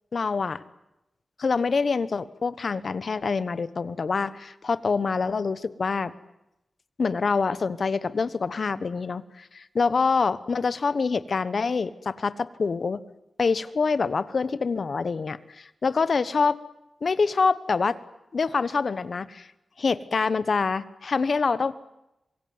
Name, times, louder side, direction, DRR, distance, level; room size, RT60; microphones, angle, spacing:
voice 1, 0.1-0.6 1.4-6.1 7.0-13.0 13.4-16.6 17.0-18.0 18.3-19.5 19.8-21.7, left 4 dB, 45° left, 15 dB, 1.1 m, -26 dB
25.5 x 23.0 x 9.6 m, 0.90 s
wide cardioid pair, 180°, 0 cm